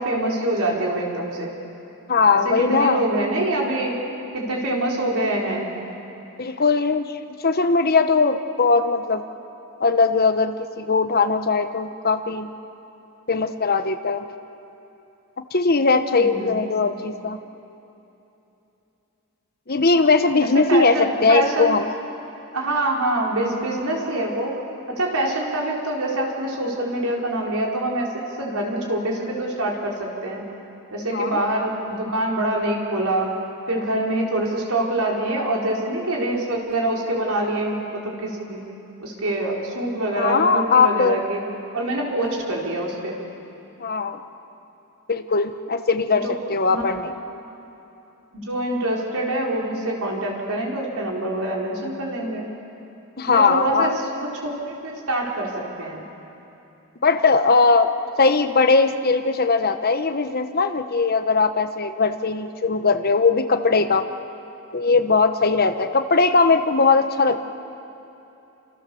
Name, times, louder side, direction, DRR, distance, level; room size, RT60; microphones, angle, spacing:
voice 1, 0.0-1.5 2.3-4.0 4.3-5.7 16.1-16.6 20.4-21.8 22.5-24.6 24.9-30.4 30.9-33.3 33.7-38.6 39.0-41.4 41.7-43.2 46.2-46.3 46.7-46.8 48.3-52.5 53.3-56.0, right 1 dB, 75° right, -2 dB, 4.7 m, -25 dB
voice 2, 2.1-3.1 6.4-7.1 7.4-9.2 9.8-12.5 13.3-14.2 15.5-17.4 19.7-21.9 31.1-31.5 40.1-41.2 43.8-44.2 45.1-47.1 53.2-53.9 57.0-57.9 58.2-64.1 64.7-67.5, left 4 dB, 45° left, 8 dB, 1.1 m, -19 dB
28.0 x 27.0 x 7.1 m, 2.9 s
head